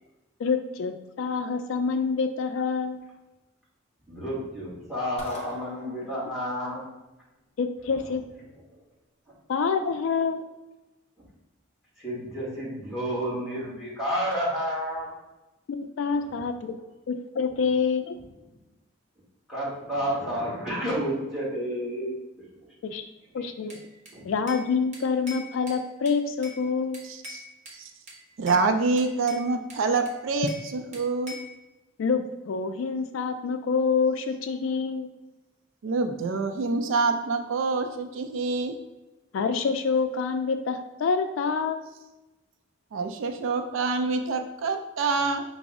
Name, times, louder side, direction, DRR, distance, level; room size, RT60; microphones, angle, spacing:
voice 1, 0.4-3.0 7.6-8.2 9.5-10.4 15.7-16.8 17.1-18.2 22.8-23.0 23.3-23.8 24.2-27.0 32.0-35.1 39.3-41.8, left 5 dB, 80° left, 8 dB, 0.3 m, -27 dB
voice 2, 4.1-6.8 8.7-8.8 12.0-15.1 16.3-16.4 19.5-22.1 23.4-23.5 24.1-24.3, equal, 5° right, -7 dB, 1.3 m, -30 dB
sound 1, 5.2-6.5, left 1 dB, 30° left, 0.7 m, -39 dB
Bell / Glass, 23.7-24.7 24.9-26.6 26.9-27.8 28.1-28.6 29.0-30.7 30.9-31.5, left 1 dB, 35° right, 0.8 m, -43 dB
voice 3, 28.4-31.3 35.8-38.8 42.9-45.4, right 4 dB, 80° right, 6 dB, 0.4 m, -26 dB
5.0 x 2.0 x 3.5 m, 1.0 s
head